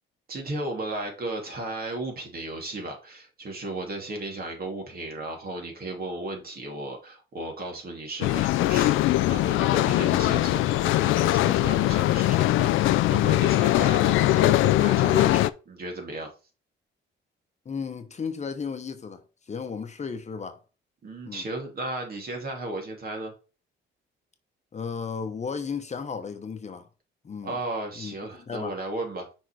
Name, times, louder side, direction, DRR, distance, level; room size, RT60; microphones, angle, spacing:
voice 1, 0.3-16.3 21.0-23.3 27.4-29.3, right 2 dB, 50° right, 2.7 m, -35 dB
sound 1, 8.2-15.5, left 15 dB, 85° left, 0.4 m, -21 dB
voice 2, 17.6-20.6 21.2-21.4 24.7-26.9 27.2-27.6 28.0-28.7, left 5 dB, 35° left, 1.0 m, -34 dB
6.0 x 4.0 x 4.7 m
cardioid pair, 90°, 20 cm